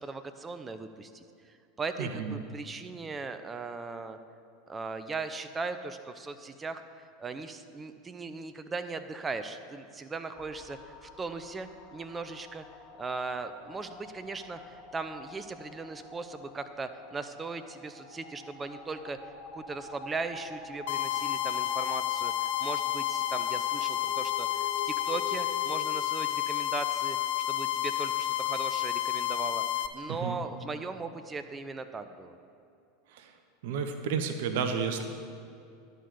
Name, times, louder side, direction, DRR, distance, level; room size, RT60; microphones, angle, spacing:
voice 1, 0.0-4.2 4.7-12.6 13.0-19.2 19.5-27.2 27.5-29.6 29.9-32.4, right 4 dB, 20° right, 9 dB, 0.5 m, -38 dB
voice 2, 2.0-2.4 30.2-30.4 33.1-33.3 33.6-35.1, right 6 dB, 60° right, 7 dB, 0.7 m, -31 dB
sound 1, 10.3-25.7, left 3 dB, 35° left, 1.5 m, -46 dB
sound 2, 20.9-29.9, left 13 dB, 65° left, 0.5 m, -30 dB
11.0 x 5.2 x 6.8 m, 2.5 s
figure-of-eight pair, 85°, 0 cm